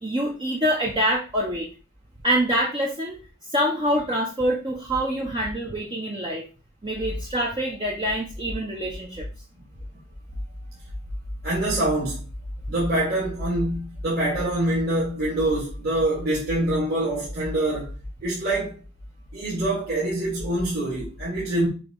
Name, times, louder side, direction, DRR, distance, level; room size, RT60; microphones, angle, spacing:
voice 1, 0.0-1.7 2.2-3.2 3.5-6.4 6.8-9.3, equal, 20° right, 0.9 m, -25 dB
voice 2, 11.4-12.2 12.7-17.9 18.2-18.8 19.3-21.7, right 1 dB, 45° right, 2.5 m, -25 dB
7.0 x 3.0 x 5.3 m
head